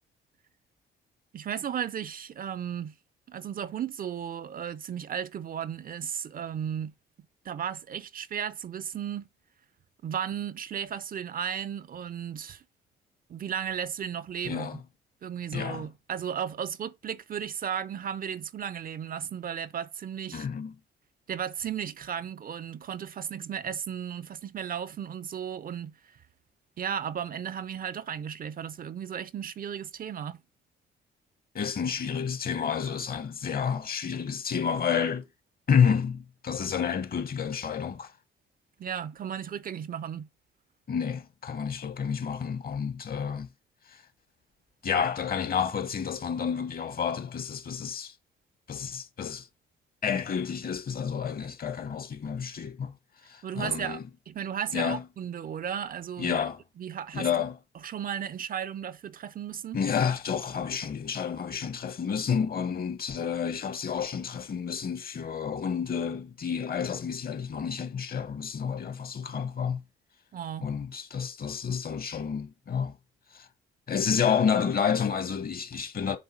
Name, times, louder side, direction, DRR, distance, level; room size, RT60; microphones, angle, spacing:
voice 1, 1.3-2.9 3.3-6.9 7.4-9.3 10.0-12.6 13.3-14.8 15.2-20.5 21.3-26.2 26.8-30.4 38.8-40.3 53.4-54.0 54.3-56.4 56.8-57.3 57.8-59.8 70.3-70.7, right 8 dB, 45° right, 0.5 m, -35 dB
voice 2, 14.5-14.8 15.5-15.9 20.3-20.7 31.5-35.2 35.7-38.1 40.9-43.5 43.9-44.0 44.8-48.1 48.7-49.5 50.0-52.9 53.3-54.0 54.7-55.0 56.2-56.6 57.1-57.6 59.7-69.8 70.6-72.9 73.3-73.5 73.9-76.2, left 7 dB, 50° left, 1.2 m, -30 dB
7.5 x 3.5 x 4.5 m
cardioid pair, 90°, 20 cm